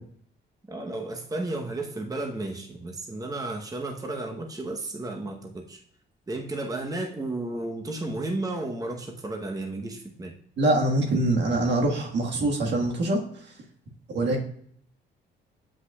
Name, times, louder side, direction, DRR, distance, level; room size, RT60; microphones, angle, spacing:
voice 1, 0.7-5.8 6.3-10.3, right 2 dB, 20° right, 2 dB, 0.9 m, -33 dB
voice 2, 10.6-13.2 14.1-14.4, right 1 dB, 60° right, 1 dB, 1.6 m, -24 dB
7.7 x 5.6 x 2.3 m, 0.65 s
cardioid pair, 90°, 20 cm